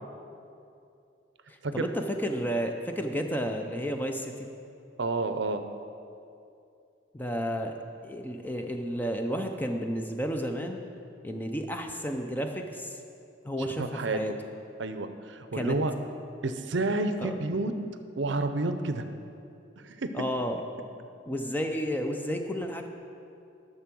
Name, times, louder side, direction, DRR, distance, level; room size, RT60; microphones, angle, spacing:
voice 1, 1.7-4.5 7.1-7.7 8.0-10.8 11.2-13.0 13.4-14.3 15.5-15.8 17.2-17.3 20.1-20.6 21.3-22.9, equal, 10° left, 4 dB, 0.5 m, -31 dB
voice 2, 5.0-5.6 13.6-14.2 14.8-15.9 16.4-17.7 18.2-19.0 19.8-20.1, right 2 dB, 65° right, 9 dB, 0.6 m, -30 dB
10.5 x 6.8 x 6.2 m, 2.6 s
head